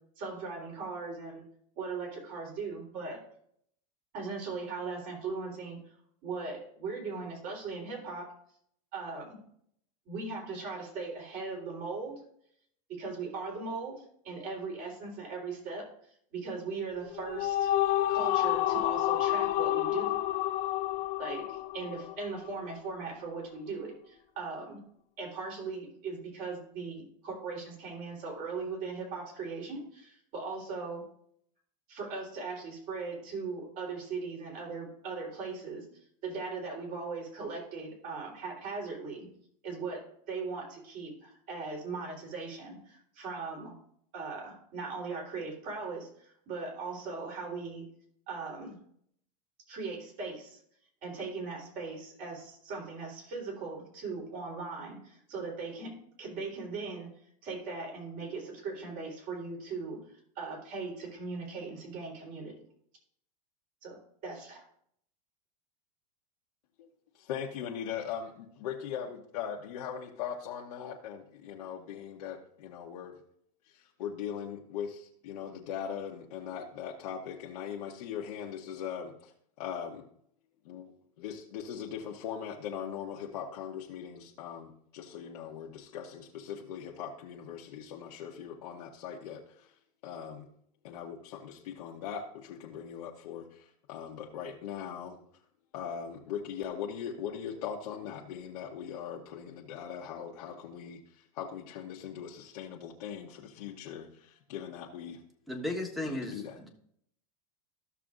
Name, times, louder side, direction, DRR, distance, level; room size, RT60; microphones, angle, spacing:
voice 1, 0.2-1.4 1.8-3.2 4.1-5.8 6.2-8.3 8.9-9.4 10.1-12.2 12.9-15.9 16.3-17.7 18.1-20.1 21.2-24.8 25.2-31.0 31.9-35.8 36.2-39.3 39.6-40.0 40.3-43.7 44.1-47.9 48.3-48.8 49.7-50.6 51.0-57.1 57.4-60.0 60.4-62.5 63.8-64.6, right 4 dB, 45° right, -1 dB, 3.7 m, -39 dB
sound 1, 17.0-22.5, left 14 dB, 45° left, 0.7 m, -29 dB
voice 2, 67.1-73.2 73.7-79.3 79.6-80.0 80.6-80.9 81.2-89.8 90.0-90.5 90.8-95.2 95.7-105.2 106.0-106.7, left 8 dB, 75° left, -2 dB, 1.1 m, -40 dB
voice 3, 105.5-106.7, left 1 dB, ahead, 2 dB, 1.3 m, -35 dB
14.0 x 6.7 x 2.5 m, 0.67 s
supercardioid pair, 130°, 20 cm